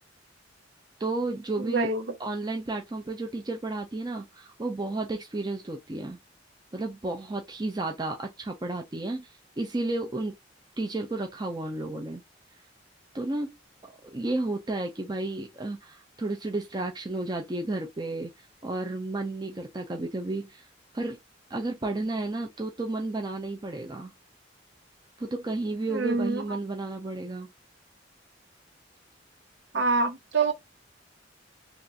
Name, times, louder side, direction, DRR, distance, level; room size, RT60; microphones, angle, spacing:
voice 1, 1.0-1.9 2.2-6.2 6.7-10.3 10.8-12.2 13.1-13.6 13.8-20.7 20.9-21.2 21.5-24.1 25.2-27.5 29.7-29.8, right 2 dB, 20° right, 0.5 m, -32 dB
voice 2, 1.6-2.0 25.9-26.4 29.7-30.5, right 3 dB, 70° right, 0.8 m, -26 dB
3.4 x 2.4 x 2.6 m
head